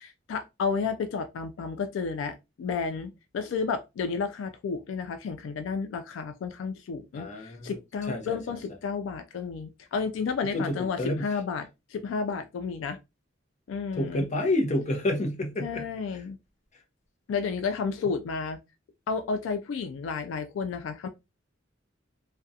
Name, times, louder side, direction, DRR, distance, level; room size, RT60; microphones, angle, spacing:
voice 1, 0.0-13.0 13.7-14.2 15.6-16.4 17.3-18.6 19.1-21.1, left 5 dB, 75° left, 0.3 m, -32 dB
voice 2, 7.1-7.7 8.1-8.4 10.5-11.3 13.9-15.8, left 1 dB, 35° left, 0.6 m, -29 dB
2.3 x 2.2 x 2.6 m
head